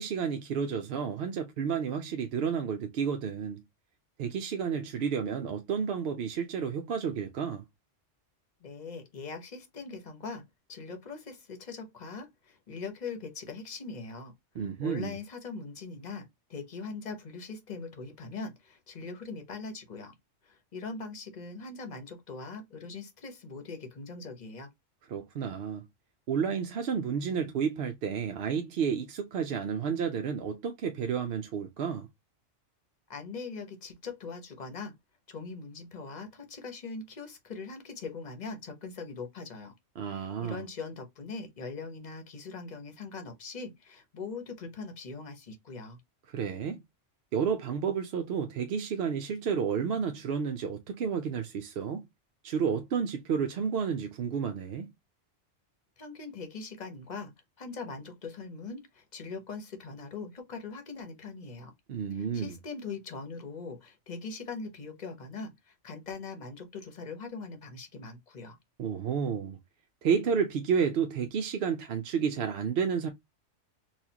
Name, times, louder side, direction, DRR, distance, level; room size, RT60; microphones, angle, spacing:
voice 1, 0.0-3.6 4.2-7.6 14.6-15.1 25.1-25.8 26.3-32.1 40.0-40.6 46.3-46.8 47.3-52.0 52.4-54.9 61.9-62.5 68.8-69.6 70.0-73.1, right 6 dB, 65° right, 0.7 m, -31 dB
voice 2, 8.6-10.4 10.7-20.1 20.4-24.7 33.1-34.9 35.3-39.7 40.0-46.0 56.0-57.3 57.6-61.7 62.2-68.6, left 4 dB, 40° left, 1.0 m, -41 dB
4.2 x 2.4 x 2.8 m
omnidirectional pair, 1.3 m